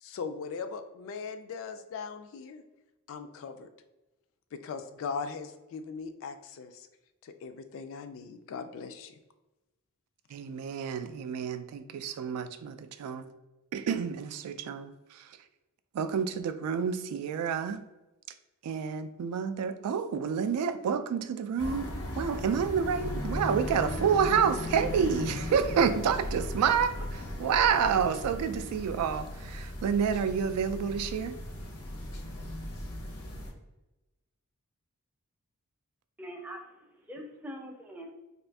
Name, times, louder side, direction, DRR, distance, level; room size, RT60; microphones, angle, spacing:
voice 1, 0.0-2.6 3.1-3.7 4.5-6.9 7.2-9.2, left 5 dB, 60° left, 9 dB, 0.3 m, -39 dB
voice 2, 10.3-13.3 13.7-15.3 15.9-17.8 18.6-21.9 22.2-31.4, right 7 dB, 85° right, 14 dB, 0.3 m, -29 dB
sound 1, 21.6-33.5, left 1 dB, 85° left, 0.7 m, -37 dB
voice 3, 36.2-38.1, equal, 5° right, 2 dB, 0.4 m, -43 dB
2.6 x 2.5 x 3.3 m, 1.0 s
head